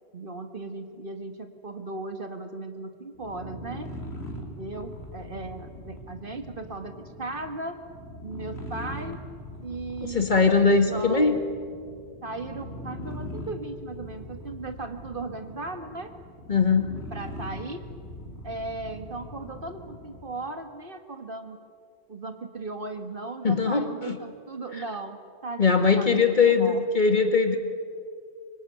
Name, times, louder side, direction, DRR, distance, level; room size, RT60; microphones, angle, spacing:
voice 1, 0.1-3.9 4.6-7.8 8.2-9.2 9.6-11.4 12.2-16.1 17.1-17.8 18.4-21.6 22.1-27.1, right 2 dB, 45° right, 7 dB, 1.9 m, -37 dB
sound 1, 3.1-20.4, equal, 60° left, 3.5 m, -41 dB
voice 2, 10.1-11.4 16.5-16.8 23.4-24.2 25.6-27.6, left 4 dB, 40° left, 6 dB, 2.1 m, -21 dB
24.5 x 24.0 x 9.3 m, 2.3 s
omnidirectional pair, 1.2 m